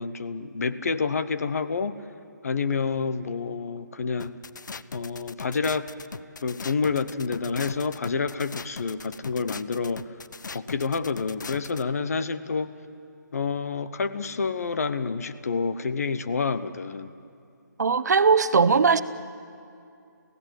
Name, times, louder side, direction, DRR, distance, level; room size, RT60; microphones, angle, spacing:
voice 1, 0.0-2.0 2.4-4.4 4.9-5.9 6.4-10.2 10.5-12.7 13.3-17.1, left 5 dB, 50° left, 12 dB, 1.0 m, -28 dB
sound 1, 4.2-11.8, left 5 dB, 70° left, 0.7 m, -39 dB
voice 2, 17.8-19.0, right 5 dB, 60° right, 11 dB, 0.9 m, -19 dB
27.5 x 16.5 x 7.8 m, 2.5 s
hypercardioid pair, 165°, 10 cm